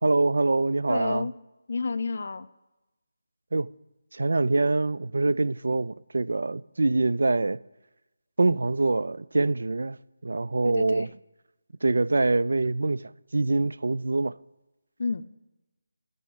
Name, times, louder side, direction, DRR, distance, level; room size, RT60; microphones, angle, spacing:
voice 1, 0.0-1.3 3.5-3.7 4.1-7.6 8.4-10.0 10.2-11.1 11.8-14.4, right 2 dB, 75° right, 0.3 m, -24 dB
voice 2, 0.9-1.3 1.7-2.5 10.6-11.1 15.0-15.2, left 4 dB, 60° left, 0.5 m, -30 dB
10.5 x 5.3 x 8.5 m
figure-of-eight pair, 160°, 0 cm